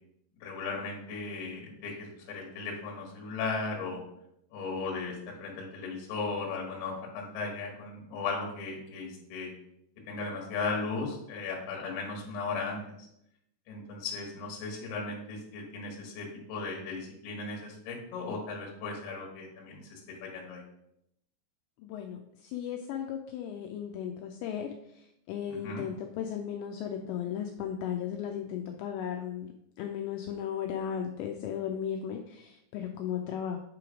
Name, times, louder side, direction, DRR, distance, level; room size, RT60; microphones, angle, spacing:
voice 1, 0.4-4.0 4.5-9.5 10.1-12.8 13.7-20.6 25.5-25.8, left 4 dB, 70° left, -1 dB, 2.9 m, -36 dB
voice 2, 21.8-29.5 29.8-33.6, left 9 dB, 85° left, 3 dB, 2.6 m, -36 dB
8.3 x 3.1 x 4.9 m, 0.78 s
omnidirectional pair, 5.4 m